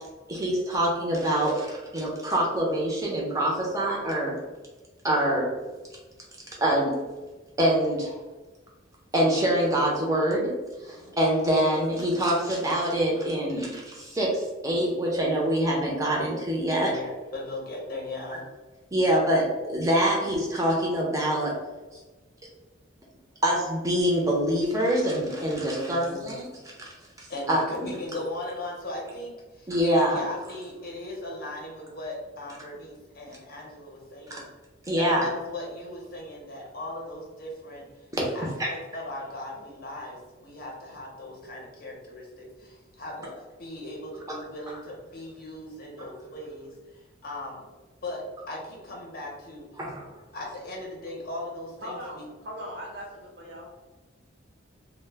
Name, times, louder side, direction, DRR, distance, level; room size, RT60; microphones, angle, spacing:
voice 1, 0.3-4.4 5.0-5.5 6.6-7.0 7.6-8.1 9.1-10.5 10.8-17.0 18.9-21.5 23.4-26.5 27.2-27.9 29.7-30.2 34.3-34.4 34.9-35.3 38.1-38.3 38.6-38.7 44.7-44.8 49.8-50.1, right 1 dB, 15° right, -3 dB, 0.5 m, -25 dB
voice 2, 10.9-11.2 16.7-18.4 25.8-26.3 27.3-34.5 35.0-37.9 38.3-47.6 48.0-49.7 50.3-52.3, left 1 dB, 50° left, -2 dB, 0.6 m, -38 dB
voice 3, 51.8-53.6, equal, 55° right, -2 dB, 0.7 m, -39 dB
2.1 x 2.0 x 3.2 m, 1.2 s
head